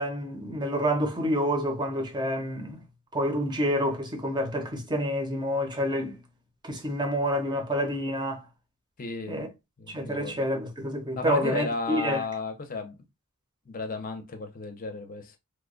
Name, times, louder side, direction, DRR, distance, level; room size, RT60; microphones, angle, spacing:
voice 1, 0.0-2.8 3.1-6.2 6.6-8.4 9.3-9.5 9.9-12.2, equal, 20° right, 0.7 m, -28 dB
voice 2, 9.0-9.5 9.8-10.4 11.2-13.0 13.7-15.4, left 4 dB, 40° left, 0.6 m, -33 dB
3.0 x 2.2 x 3.7 m
head